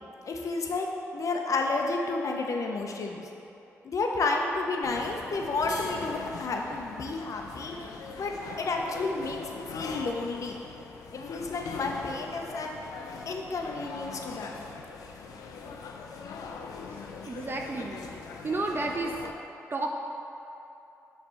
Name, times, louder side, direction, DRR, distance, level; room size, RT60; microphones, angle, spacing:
voice 1, 0.3-0.9 1.1-3.2 3.8-7.9 8.2-10.6 11.1-12.7 13.3-14.5, left 3 dB, 60° left, 2 dB, 0.8 m, -31 dB
sound 1, 4.8-19.3, left 5 dB, 80° left, 0.5 m, -41 dB
voice 2, 17.2-18.0 18.4-19.1 19.7-19.9, right 2 dB, 35° right, 1 dB, 0.6 m, -31 dB
6.7 x 3.4 x 5.6 m, 2.9 s
supercardioid pair, 45°, 6 cm